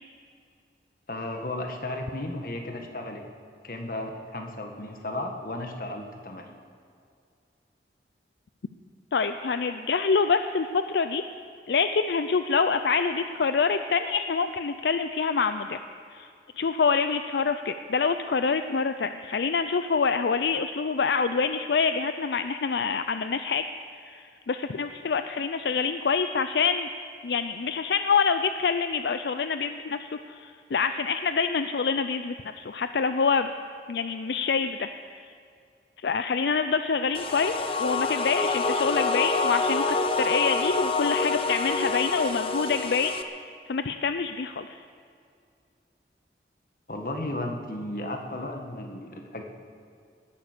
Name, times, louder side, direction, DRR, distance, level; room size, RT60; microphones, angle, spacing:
voice 1, 1.1-3.2 3.6-6.6 46.9-49.4, left 1 dB, 50° left, 3 dB, 1.6 m, -34 dB
voice 2, 9.1-11.2 11.7-15.8 16.1-16.3 16.6-23.7 24.1-26.9 27.2-33.5 33.9-34.9 36.0-37.5 37.8-44.8, left 5 dB, 75° left, 9 dB, 0.5 m, -26 dB
sound 1, 37.1-43.2, left 3 dB, 30° left, 0.7 m, -27 dB
18.0 x 10.5 x 6.7 m, 2.4 s
head